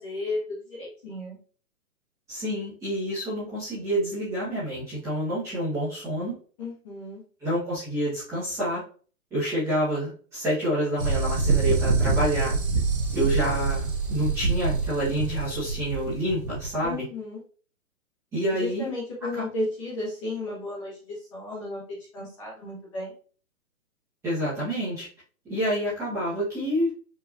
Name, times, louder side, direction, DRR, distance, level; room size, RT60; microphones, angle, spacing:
voice 1, 0.0-1.4 6.6-7.2 16.8-17.4 18.5-23.1, left 2 dB, 20° left, -6 dB, 1.4 m, -34 dB
voice 2, 2.3-6.3 7.4-8.8 9.3-12.6 13.1-17.0 18.3-18.9 19.4-19.5 24.2-25.1 25.5-26.9, equal, 5° right, -13 dB, 1.3 m, -28 dB
sound 1, 11.0-16.8, right 4 dB, 40° right, 1.1 m, -26 dB
4.9 x 3.0 x 2.6 m, 0.41 s
hypercardioid pair, 170°, 43 cm